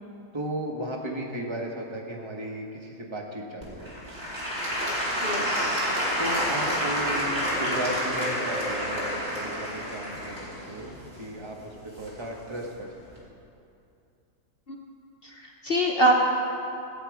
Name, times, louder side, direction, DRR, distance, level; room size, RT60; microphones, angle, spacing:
voice 1, 0.3-4.2 6.2-12.9, right 1 dB, 20° right, 0 dB, 1.3 m, -35 dB
Applause / Crowd, 3.6-12.5 13.1-13.2, equal, 40° right, 3.3 m, -29 dB
voice 2, 5.2-5.9 14.7-14.8 15.2-16.3, right 1 dB, 45° left, 0 dB, 1.1 m, -25 dB
17.0 x 9.1 x 5.0 m, 2.6 s
omnidirectional pair, 1.5 m